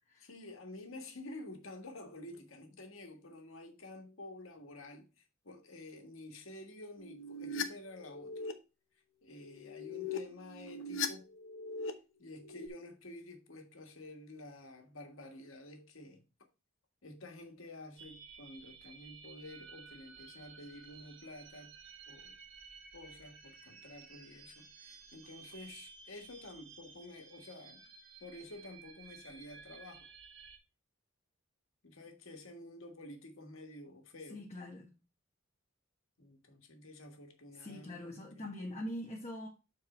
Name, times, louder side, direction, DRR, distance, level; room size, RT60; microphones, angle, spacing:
voice 1, 0.2-8.4 9.2-11.3 12.2-16.2 17.0-21.7 22.1-22.4 22.9-27.8 28.2-30.1 31.8-34.4 36.2-38.5, left 2 dB, 90° left, 1.7 m, -50 dB
sound 1, 7.0-7.6 8.0-8.5 9.5-11.1 11.3-11.9 12.2-12.7, left 4 dB, 70° left, 1.0 m, -40 dB
sound 2, 18.0-30.6, right 5 dB, 65° right, 1.8 m, -55 dB
voice 2, 34.3-34.9 37.6-39.5, left 1 dB, 35° left, 1.4 m, -43 dB
7.1 x 4.7 x 4.4 m
head